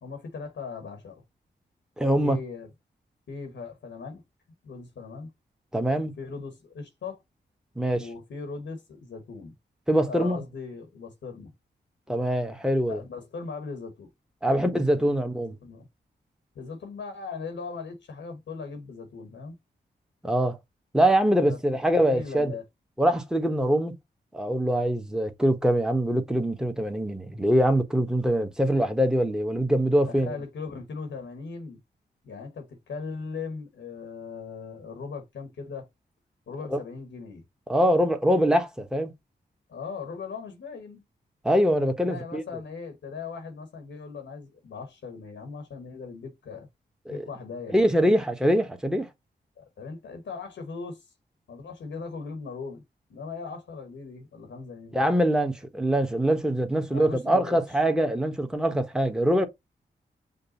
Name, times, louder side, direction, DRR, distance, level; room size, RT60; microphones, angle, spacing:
voice 1, 0.0-1.2 2.2-2.7 3.3-4.2 4.6-5.3 6.2-7.2 7.9-9.5 10.1-11.5 12.9-14.1 14.4-15.9 16.5-19.6 21.4-22.6 30.1-31.8 32.2-35.9 36.5-37.4 39.7-41.0 42.0-46.7 47.1-47.9 49.6-51.0 51.5-52.8 53.1-55.0 56.9-57.6, left 4 dB, 80° left, 1.2 m, -39 dB
voice 2, 2.0-2.4 5.7-6.1 7.8-8.0 9.9-10.4 12.1-13.0 14.4-15.6 20.2-20.6 20.9-22.6 23.0-23.9 24.3-30.3 36.7-36.8 37.7-39.1 41.4-42.4 47.1-47.2 47.7-49.1 54.9-59.5, equal, 5° right, 1.2 m, -23 dB
5.3 x 2.2 x 4.0 m
supercardioid pair, 45°, 19 cm